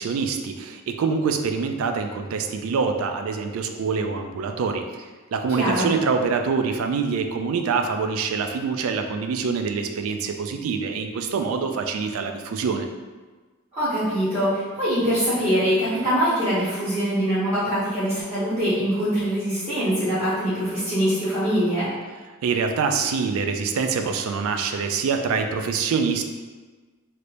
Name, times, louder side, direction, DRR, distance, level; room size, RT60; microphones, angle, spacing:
voice 1, 0.0-12.9 22.4-26.2, right 5 dB, 75° right, 5 dB, 0.3 m, -25 dB
voice 2, 5.6-5.9 13.7-21.9, equal, 30° right, -13 dB, 1.4 m, -23 dB
3.3 x 2.8 x 2.5 m, 1.3 s
head